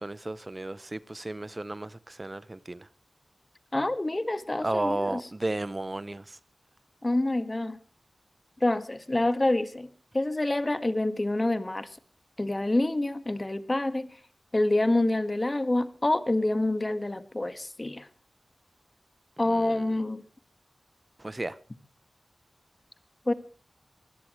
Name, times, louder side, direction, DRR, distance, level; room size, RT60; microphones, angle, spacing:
voice 1, 0.0-2.9 4.6-6.4 19.4-19.8 21.2-21.6, right 2 dB, 30° right, 0.7 m, -33 dB
voice 2, 3.7-5.2 7.0-7.8 8.6-9.9 10.1-11.9 12.4-14.1 14.5-18.1 19.4-20.2 23.3-23.4, left 2 dB, 30° left, 1.7 m, -27 dB
23.0 x 17.0 x 3.2 m
wide cardioid pair, 65°, 0 cm